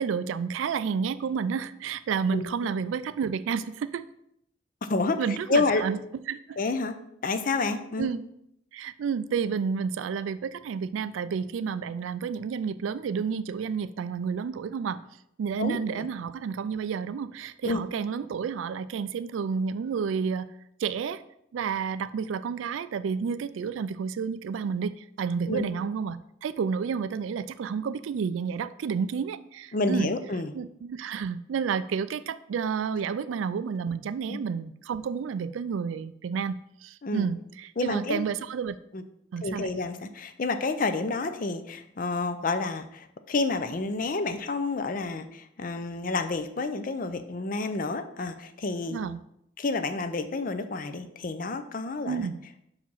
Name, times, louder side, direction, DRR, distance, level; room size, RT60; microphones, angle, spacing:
voice 1, 0.0-4.0 5.2-6.0 6.3-6.6 8.0-8.2 8.7-15.0 15.4-20.5 20.8-21.2 21.5-30.1 30.5-38.8 39.3-39.7 48.9-49.2 52.1-52.4, right 6 dB, 85° right, 14 dB, 0.3 m, -30 dB
voice 2, 2.3-2.7 4.9-5.8 6.6-7.0 7.2-8.1 15.6-16.1 17.6-17.8 25.5-25.7 29.7-30.5 34.3-34.4 37.0-37.3 37.8-38.2 38.9-39.0 39.4-49.0 49.6-52.3, left 3 dB, 45° left, 10 dB, 0.5 m, -29 dB
6.0 x 4.9 x 5.4 m, 0.76 s
head